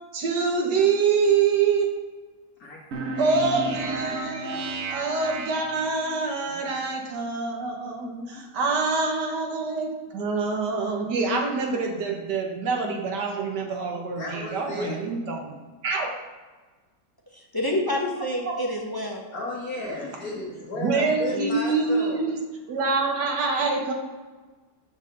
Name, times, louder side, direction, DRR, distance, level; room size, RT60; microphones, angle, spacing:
voice 1, 0.1-1.9 3.2-4.6 4.9-15.5 15.8-16.1 18.5-18.6 20.8-22.4 22.7-23.9, right 4 dB, 85° right, 1 dB, 1.8 m, -25 dB
sound 1, 2.9-6.2, right 2 dB, 55° right, 0.9 m, -32 dB
voice 2, 14.2-15.0 19.3-22.3, left 2 dB, 60° left, -6 dB, 1.9 m, -34 dB
voice 3, 17.5-19.2 21.3-21.5, left 1 dB, 15° left, -1 dB, 0.8 m, -27 dB
7.0 x 4.3 x 6.6 m, 1.3 s
omnidirectional pair, 1.8 m